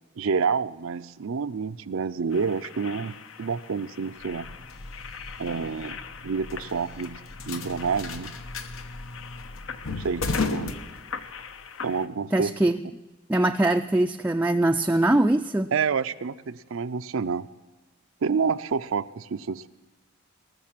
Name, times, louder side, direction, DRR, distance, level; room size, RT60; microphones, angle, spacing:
voice 1, 0.2-4.5 5.4-7.2 7.5-8.3 9.9-10.8 11.8-12.5 15.7-17.5 18.2-19.7, right 5 dB, 80° right, 12 dB, 0.5 m, -28 dB
sound 1, 2.3-12.1, left 6 dB, 70° left, 0.7 m, -42 dB
sound 2, 4.2-11.5, left 3 dB, 85° left, 1.0 m, -35 dB
voice 2, 12.3-12.8 13.3-15.7, right 1 dB, 10° right, 5 dB, 0.3 m, -22 dB
19.0 x 6.7 x 7.4 m, 1.2 s
head